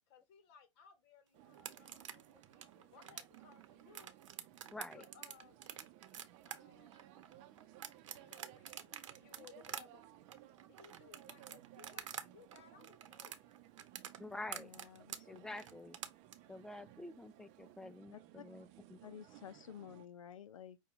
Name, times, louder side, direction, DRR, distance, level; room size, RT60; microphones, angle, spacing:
voice 1, 0.1-4.1 4.9-7.0 8.2-10.0 10.7-13.5, left 6 dB, 50° left, 1.2 m, -63 dB
sound 1, 1.3-20.1, right 13 dB, 40° right, 0.6 m, -60 dB
sound 2, 1.5-12.3 12.5-16.3, right 9 dB, 70° right, 0.8 m, -47 dB
voice 2, 4.7-5.0 14.2-14.7 15.3-16.0 16.5-19.0, left 2 dB, 5° left, 0.3 m, -48 dB
voice 3, 14.5-15.4 18.1-18.5 19.0-20.8, left 9 dB, 85° left, 0.4 m, -52 dB
5.7 x 2.3 x 3.6 m
hypercardioid pair, 105°, 17 cm